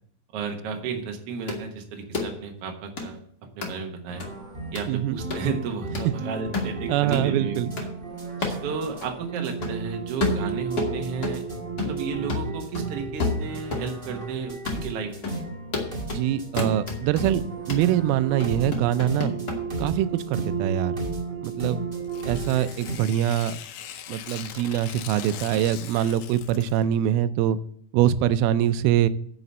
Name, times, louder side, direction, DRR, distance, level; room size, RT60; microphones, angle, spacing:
voice 1, 0.3-3.2 3.6-4.3 4.7-7.7 8.6-11.4 11.8-15.3, right 5 dB, 60° right, 3 dB, 1.7 m, -32 dB
sound 1, 1.5-1.6 2.1-2.3 3.0-3.1 3.6-3.7 4.2-4.3 4.8-4.9 5.3-5.5 5.9-6.1 6.5-6.7 7.1-7.3 7.8-7.9 8.4-8.6 9.0-9.1 9.6-9.8 10.2-11.4 11.8-12.0 12.3-13.9 14.2-14.3 14.7-14.8 15.2-15.4 15.7-16.2 16.6-17.3 17.7-17.9 18.4-19.6, left 3 dB, 40° left, 1.5 m, -29 dB
sound 2, 4.1-23.0, right 4 dB, 35° right, 0.8 m, -34 dB
voice 2, 4.9-5.2 6.9-7.7 8.4-8.6 16.1-19.3 19.8-21.0 21.4-21.8 22.3-23.6 24.1-27.6 27.9-29.1, right 11 dB, 90° right, 13 dB, 2.4 m, -24 dB
Tearing, 22.0-26.9, left 10 dB, 75° left, 2.0 m, -41 dB
9.6 x 5.0 x 7.9 m, 0.63 s
omnidirectional pair, 4.3 m